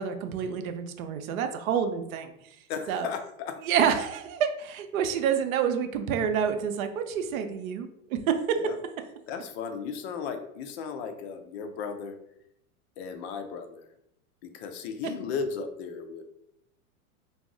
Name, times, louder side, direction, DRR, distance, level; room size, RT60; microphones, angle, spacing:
voice 1, 0.0-2.6 2.9-3.1 3.6-8.6, right 7 dB, 70° right, 7 dB, 0.5 m, -28 dB
voice 2, 2.7-3.6 8.5-8.8 9.3-12.2 13.0-13.9 14.4-16.4, left 6 dB, 50° left, 7 dB, 0.5 m, -35 dB
2.3 x 2.0 x 3.7 m, 0.78 s
hypercardioid pair, 125°, 44 cm